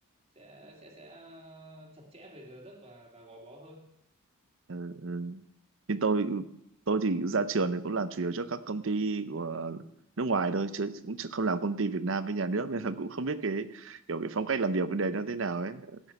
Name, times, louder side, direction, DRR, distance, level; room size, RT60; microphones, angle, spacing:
voice 1, 0.3-3.9, right 1 dB, 25° right, 0 dB, 2.0 m, -50 dB
voice 2, 4.7-5.4 5.9-6.5 6.9-9.8 10.2-16.0, right 3 dB, 60° right, 13 dB, 0.7 m, -30 dB
17.0 x 7.3 x 5.5 m, 0.80 s
head